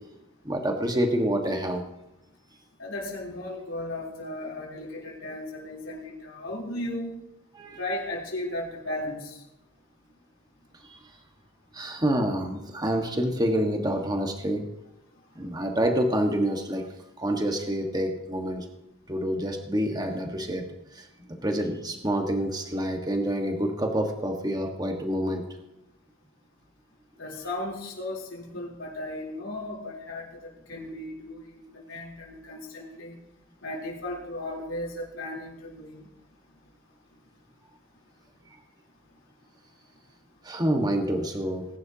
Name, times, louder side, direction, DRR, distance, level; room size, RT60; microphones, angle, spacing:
voice 1, 0.4-1.8 7.5-7.8 10.8-11.0 11.7-14.6 15.3-16.9 17.2-18.7 19.1-20.6 20.9-21.1 21.4-25.4 40.4-41.7, equal, 20° right, 3 dB, 1.5 m, -27 dB
voice 2, 2.8-7.2 7.8-9.4 27.2-33.2 33.6-36.1, left 1 dB, 85° left, -3 dB, 3.6 m, -36 dB
20.0 x 11.0 x 2.9 m, 0.90 s
head